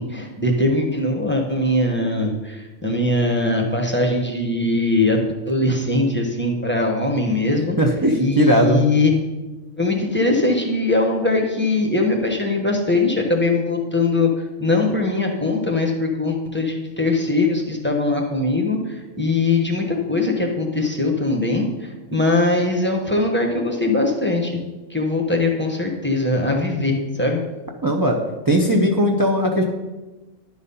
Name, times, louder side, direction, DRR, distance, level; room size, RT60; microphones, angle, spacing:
voice 1, 0.0-7.8 8.2-9.1 9.8-14.3 14.6-24.6 24.9-27.4, left 2 dB, 10° left, 0 dB, 1.0 m, -21 dB
voice 2, 7.8-8.8 27.8-28.2 28.5-29.6, equal, 25° right, 1 dB, 0.5 m, -18 dB
11.0 x 4.1 x 5.5 m, 1.1 s
omnidirectional pair, 1.4 m